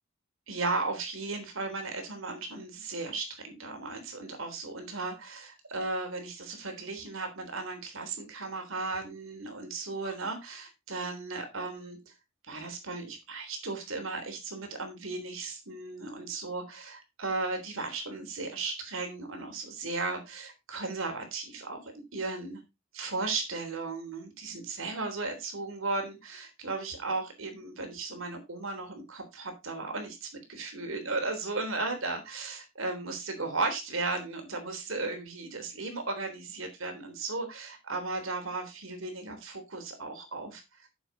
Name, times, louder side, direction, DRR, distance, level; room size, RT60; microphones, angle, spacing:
voice 1, 0.5-12.0 12.5-22.6 22.9-40.9, right 3 dB, 75° right, 5 dB, 3.5 m, -35 dB
9.7 x 7.2 x 4.0 m, 0.23 s
head